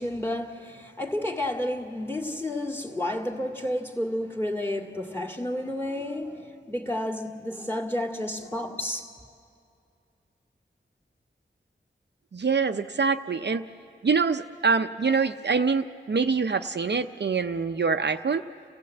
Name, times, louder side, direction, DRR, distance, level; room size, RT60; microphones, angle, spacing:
voice 1, 0.0-9.1, left 1 dB, 10° left, 2.3 m, -31 dB
voice 2, 12.3-13.7 14.0-18.4, right 5 dB, 60° right, 0.6 m, -25 dB
30.0 x 16.0 x 7.9 m
wide cardioid pair, 55°, 20 cm